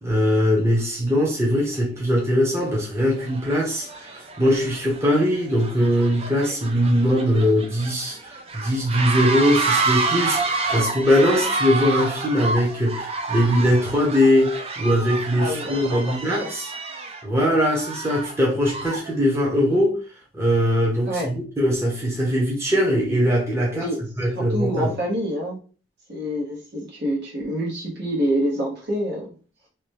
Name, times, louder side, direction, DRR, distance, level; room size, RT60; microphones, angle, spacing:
voice 1, 0.0-16.7 17.2-19.9 20.3-23.9 24.2-24.9, equal, 15° right, 0.8 m, -21 dB
sound 1, 1.8-1.9 2.6-2.8 3.1-19.1, right 3 dB, 35° right, 0.4 m, -29 dB
voice 2, 15.4-16.5 21.1-21.3 23.7-24.0 24.3-25.6 26.1-29.3, equal, 60° right, 1.1 m, -27 dB
2.8 x 2.2 x 3.3 m
head